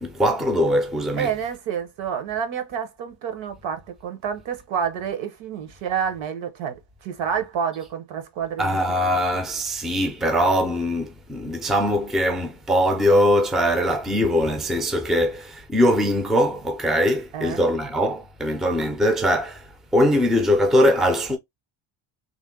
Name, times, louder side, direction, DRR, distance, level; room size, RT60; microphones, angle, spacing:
voice 1, 0.0-1.3 8.6-21.4, equal, ahead, 0.4 m, -21 dB
voice 2, 1.2-8.8 17.3-17.6, right 7 dB, 65° right, 1.1 m, -29 dB
3.5 x 2.1 x 3.7 m
cardioid pair, 140°, 50 cm